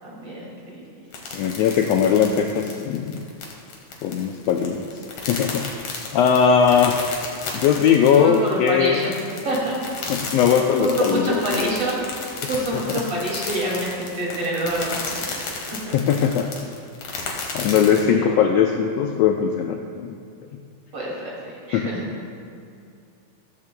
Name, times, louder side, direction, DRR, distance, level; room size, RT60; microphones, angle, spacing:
voice 1, 0.0-1.1 8.1-9.1 9.4-9.8 10.8-12.0 12.5-15.2 15.7-16.1 17.9-18.4 20.9-21.3 21.7-22.0 22.5-22.6, right 1 dB, 50° right, -5 dB, 3.3 m, -27 dB
sound 1, 1.1-18.0, left 4 dB, 60° left, 2.5 m, -33 dB
voice 2, 1.3-3.2 4.0-5.6 6.1-6.9 7.5-9.0 10.1-11.7 15.9-16.5 17.5-20.2 21.7-21.9, left 7 dB, 90° left, 4 dB, 1.4 m, -20 dB
14.5 x 14.5 x 2.2 m, 2.4 s
omnidirectional pair, 3.5 m